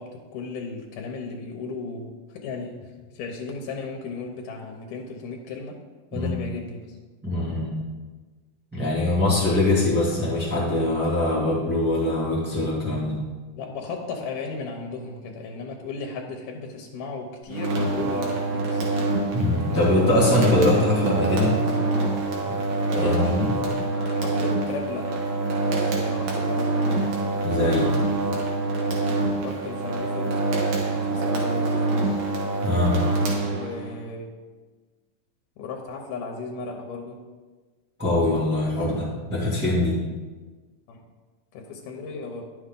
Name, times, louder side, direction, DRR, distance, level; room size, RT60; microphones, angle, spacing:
voice 1, 0.0-2.9 3.1-5.8 6.1-7.0 13.6-18.8 23.9-25.2 25.6-27.1 29.4-30.4 30.9-31.9 33.4-34.3 35.6-37.2 40.9-41.0 41.5-42.5, left 4 dB, 80° left, 2 dB, 2.3 m, -35 dB
voice 2, 7.2-7.8 8.7-13.2 19.3-21.6 22.4-22.5 22.9-23.6 27.4-27.9 32.6-33.0 38.0-39.9, left 2 dB, 5° right, -7 dB, 1.5 m, -23 dB
sound 1, 17.5-34.0, right 2 dB, 80° right, 2.7 m, -25 dB
10.0 x 6.2 x 3.8 m, 1.3 s
omnidirectional pair, 3.7 m